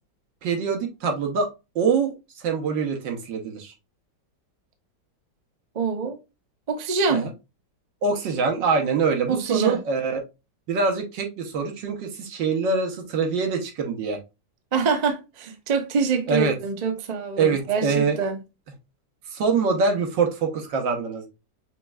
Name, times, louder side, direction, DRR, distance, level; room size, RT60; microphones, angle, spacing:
voice 1, 0.4-1.5 1.7-2.1 2.4-3.7 7.1-7.3 8.0-10.2 10.7-14.2 16.3-16.5 17.4-18.2 19.3-21.3, right 5 dB, 75° right, 1.6 m, -24 dB
voice 2, 5.7-6.2 6.7-7.3 9.3-9.8 14.7-18.4, right 5 dB, 55° right, 0.4 m, -25 dB
5.8 x 3.2 x 2.3 m
omnidirectional pair, 2.1 m